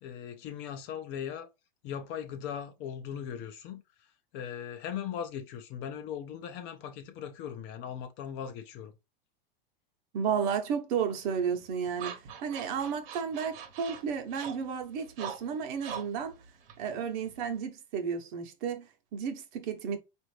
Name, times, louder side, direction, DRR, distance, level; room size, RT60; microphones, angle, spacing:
voice 1, 0.0-1.5 1.8-4.1 4.3-8.9, left 8 dB, 40° left, 0.6 m, -39 dB
voice 2, 10.1-12.1 12.4-16.3 16.8-20.0, right 7 dB, 55° right, 0.9 m, -32 dB
sound 1, 11.1-17.6, right 8 dB, 75° right, 1.1 m, -45 dB
4.1 x 2.6 x 3.1 m
supercardioid pair, 140°, 29 cm